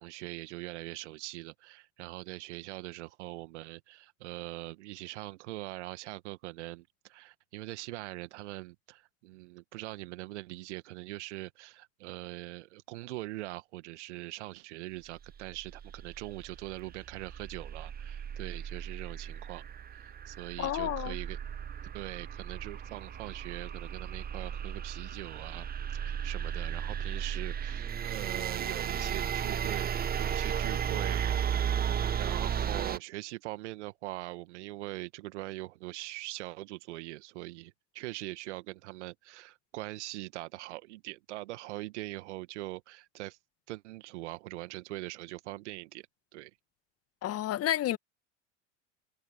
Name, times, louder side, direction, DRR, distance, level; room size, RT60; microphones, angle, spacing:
voice 1, 0.0-19.6 19.9-21.4 21.9-25.7 25.9-31.4 32.2-43.4 43.7-46.1 46.3-46.5, right 19 dB, 65° right, 2.0 m, -42 dB
sound 1, 15.3-33.0, right 8 dB, 25° right, 1.3 m, -35 dB
voice 2, 20.6-21.2 47.2-48.0, left 13 dB, 40° left, 2.0 m, -30 dB
hypercardioid pair, 80°, 37 cm